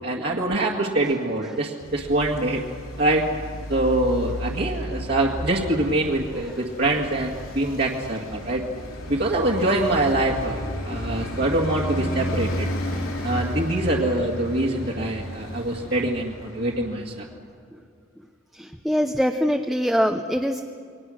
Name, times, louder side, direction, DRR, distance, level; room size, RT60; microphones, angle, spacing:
voice 1, 0.0-2.6 3.0-3.2 3.7-8.6 9.1-10.6 10.8-12.7 13.2-17.3, right 1 dB, 50° right, -3 dB, 1.9 m, -24 dB
Traffic noise roadway noise, 1.8-17.3, equal, 75° left, 4.5 m, -33 dB
voice 2, 18.5-20.6, equal, ahead, 4 dB, 0.7 m, -23 dB
28.5 x 23.0 x 6.4 m, 2.3 s
head